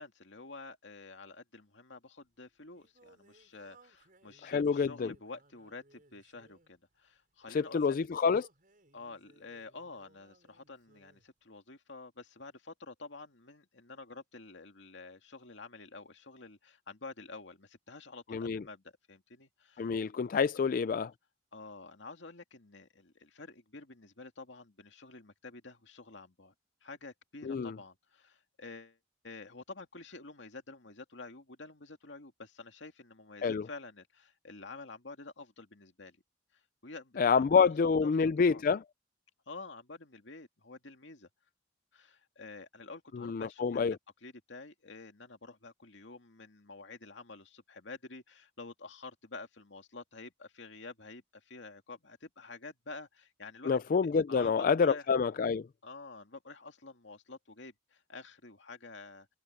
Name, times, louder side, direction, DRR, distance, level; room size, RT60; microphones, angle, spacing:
voice 1, 0.0-8.0 8.9-19.9 21.5-26.5 26.8-29.0 29.2-36.2 36.5-37.5 38.0-38.1 38.4-38.6 39.5-41.3 41.9-55.1 55.8-59.3, left 3 dB, 80° left, 2.2 m, -49 dB
Singing, 2.2-11.3, right 2 dB, 50° right, 5.6 m, -64 dB
voice 2, 4.4-5.1 7.5-8.5 18.3-18.6 19.8-21.1 27.4-27.7 33.4-33.7 37.2-38.8 43.1-44.0 53.7-55.7, left 5 dB, 50° left, 0.3 m, -27 dB
head